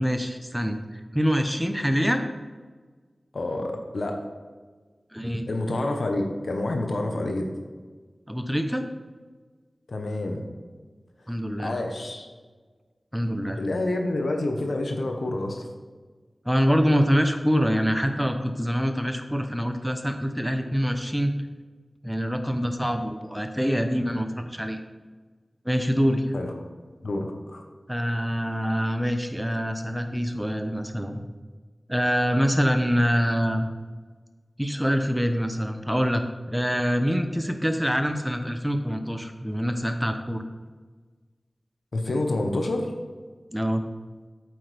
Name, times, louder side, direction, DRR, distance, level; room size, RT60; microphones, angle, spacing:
voice 1, 0.0-2.3 5.1-5.4 8.3-8.9 11.3-11.8 13.1-13.6 16.4-21.3 22.0-24.8 25.6-26.3 27.9-31.2 31.9-33.7 34.6-40.4 43.5-43.8, equal, 5° right, 6 dB, 0.8 m, -25 dB
voice 2, 3.3-4.2 5.5-7.5 9.9-10.4 11.6-12.3 13.6-15.7 26.3-26.5 27.0-27.6 41.9-42.9, left 2 dB, 80° left, 3 dB, 1.2 m, -28 dB
8.4 x 8.0 x 3.5 m, 1.4 s
wide cardioid pair, 55°, 0 cm